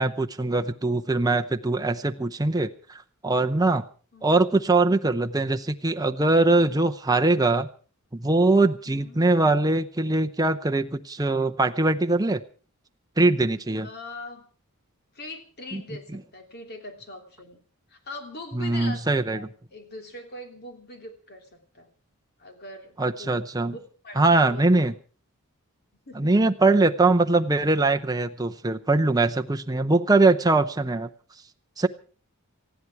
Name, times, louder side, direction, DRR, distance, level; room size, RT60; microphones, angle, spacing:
voice 1, 0.0-2.7 3.2-3.8 4.2-7.7 8.1-12.4 13.2-13.9 15.7-15.8 18.5-19.5 23.0-23.7 24.2-24.9 26.1-31.1 31.8-31.9, right 2 dB, 15° right, 7 dB, 0.7 m, -22 dB
voice 2, 4.1-4.4 8.8-9.2 13.8-14.5 15.1-17.6 17.9-21.9 22.4-23.8 24.0-24.9 26.0-26.3, left 2 dB, 45° left, 5 dB, 3.0 m, -42 dB
19.5 x 15.0 x 4.7 m, 0.39 s
head